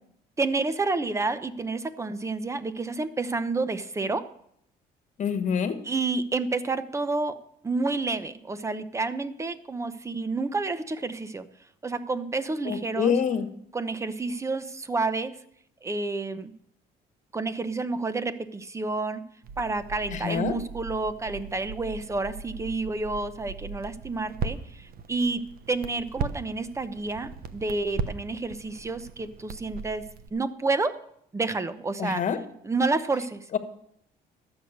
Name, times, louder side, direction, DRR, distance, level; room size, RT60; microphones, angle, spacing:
voice 1, 0.4-4.3 5.8-7.4 7.6-11.5 11.8-13.1 13.7-15.3 15.8-16.5 17.3-19.2 19.6-30.0 30.3-31.0 31.3-32.2 32.6-33.4, right 3 dB, 15° right, 13 dB, 0.8 m, -29 dB
voice 2, 5.2-5.8 12.7-13.5 20.1-20.5 32.0-32.4 33.5-33.6, left 7 dB, 45° left, 9 dB, 1.4 m, -26 dB
Crackle, 19.4-30.3, right 5 dB, 60° right, 1.0 m, -38 dB
12.5 x 8.0 x 6.6 m, 0.69 s
cardioid pair, 110°, 17 cm